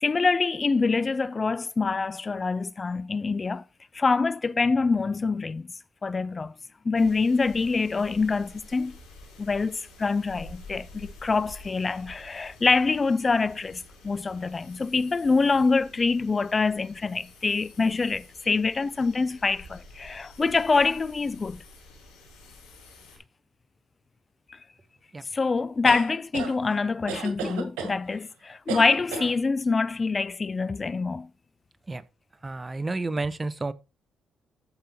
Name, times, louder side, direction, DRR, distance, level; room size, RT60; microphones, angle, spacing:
voice 1, 0.0-3.6 3.9-5.7 6.0-6.5 6.8-9.0 9.4-21.6 24.5-24.6 25.3-31.3, left 4 dB, 35° left, 0.4 m, -25 dB
sound 1, 6.9-23.2, left 2 dB, 90° left, 5.3 m, -49 dB
sound 2, 25.8-26.5 27.1-27.9 28.7-29.3, right 5 dB, 90° right, 1.8 m, -33 dB
voice 2, 32.4-33.7, right 3 dB, 25° right, 0.9 m, -30 dB
14.0 x 5.6 x 3.0 m
supercardioid pair, 60°, 0 cm